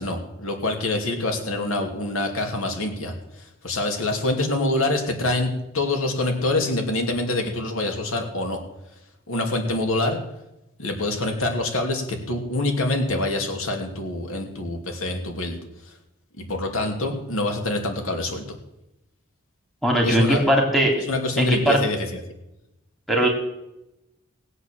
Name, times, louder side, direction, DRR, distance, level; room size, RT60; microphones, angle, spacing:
voice 1, 0.0-3.1 3.6-8.6 9.3-10.2 10.8-15.6 16.4-18.4 20.0-20.4 21.0-22.2, left 2 dB, 90° left, 3 dB, 2.8 m, -25 dB
voice 2, 19.8-20.9 21.4-21.8 23.1-23.3, right 1 dB, ahead, 0 dB, 3.1 m, -19 dB
19.0 x 8.2 x 7.5 m, 0.89 s
head